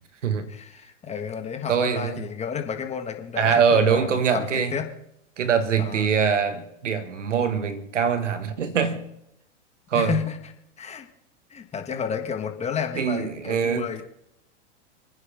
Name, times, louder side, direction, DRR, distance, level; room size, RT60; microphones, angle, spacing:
voice 1, 0.5-4.9 5.8-6.1 9.9-10.5 10.8-11.1 11.5-14.0, left 7 dB, 20° left, 1.8 m, -31 dB
voice 2, 1.7-2.2 3.4-4.7 5.4-9.1 9.9-10.2 13.0-14.0, right 6 dB, 85° right, 1.9 m, -23 dB
29.5 x 9.8 x 3.6 m
hypercardioid pair, 120°, 36 cm